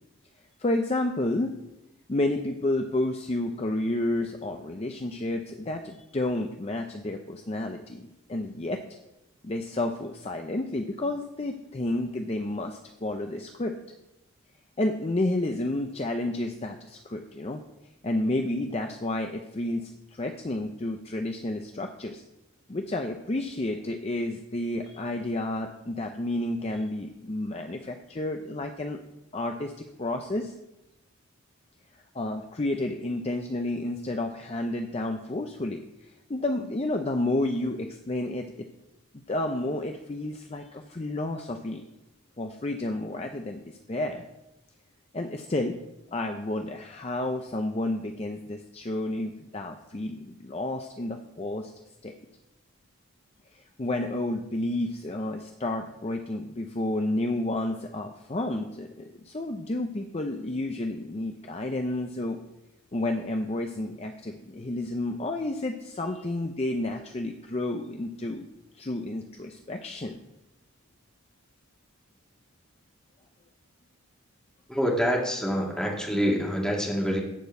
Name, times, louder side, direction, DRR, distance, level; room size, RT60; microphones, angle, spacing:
voice 1, 0.6-1.6 2.1-8.8 9.4-13.7 14.8-17.6 18.0-22.2 22.7-29.0 29.3-30.5 32.1-38.7 39.3-41.8 42.4-44.3 45.1-45.8 46.1-51.7 52.0-52.1 53.5-62.4 62.9-68.5 68.7-70.2, left 1 dB, 30° left, 4 dB, 0.5 m, -31 dB
voice 2, 74.7-77.2, equal, 5° left, -2 dB, 1.9 m, -26 dB
12.0 x 4.5 x 7.9 m, 0.92 s
head